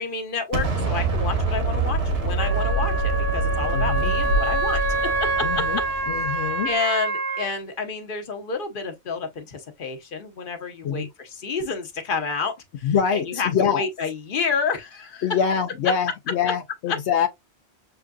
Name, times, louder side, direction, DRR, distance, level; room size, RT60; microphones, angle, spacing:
voice 1, 0.0-4.8 5.4-5.7 6.3-15.3 16.9-17.0, left 5 dB, 50° left, 1.1 m, -29 dB
Explosion, 0.5-6.5, right 2 dB, 85° right, 1.4 m, -25 dB
Wind instrument woodwind instrument, 2.4-7.5, right 3 dB, 70° right, 1.0 m, -26 dB
voice 2, 3.7-4.1 5.4-5.8 6.1-6.7 10.8-11.1 12.8-13.8 15.2-17.3, left 7 dB, 80° left, 0.9 m, -24 dB
6.8 x 2.6 x 2.3 m
omnidirectional pair, 1.1 m